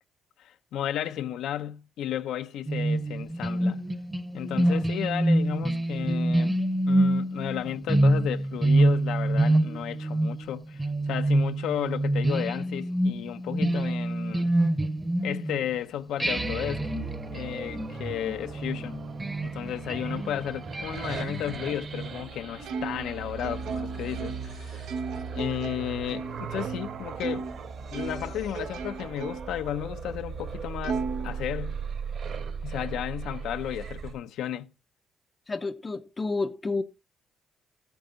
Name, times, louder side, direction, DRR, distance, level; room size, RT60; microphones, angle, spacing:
voice 1, 0.4-3.9 4.3-6.6 6.9-14.5 15.2-16.9 17.3-19.0 19.4-24.9 25.3-27.5 27.9-31.8 32.6-34.7, left 11 dB, 80° left, 0.8 m, -33 dB
sound 1, 2.7-15.7 16.2-22.1, right 1 dB, 15° right, 1.0 m, -26 dB
sound 2, 16.3-34.1, right 6 dB, 60° right, 2.9 m, -38 dB
Plucked string instrument, 22.6-27.6 27.9-29.6 30.1-30.2 30.8-32.0, right 5 dB, 85° right, 1.5 m, -36 dB
voice 2, 35.5-36.8, left 3 dB, 25° left, 0.7 m, -30 dB
14.0 x 8.3 x 3.9 m
cardioid pair, 90°, 0 cm